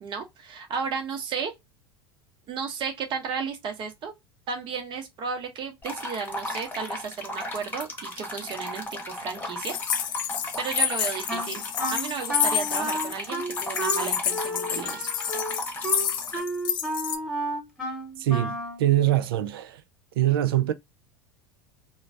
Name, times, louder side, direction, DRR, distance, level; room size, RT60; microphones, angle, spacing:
voice 1, 0.0-1.5 2.5-4.1 4.5-9.8 10.6-15.1, right 6 dB, 40° right, 0.9 m, -33 dB
sound 1, 5.8-16.4, left 1 dB, 15° left, 1.0 m, -36 dB
sound 2, 9.6-13.1 13.5-17.2, left 9 dB, 35° left, 0.5 m, -29 dB
Wind instrument woodwind instrument, 11.3-18.8, right 1 dB, 5° right, 1.3 m, -32 dB
voice 2, 18.2-19.8 20.2-20.7, right 13 dB, 65° right, 0.4 m, -23 dB
3.0 x 2.1 x 2.4 m
figure-of-eight pair, 75°, 13 cm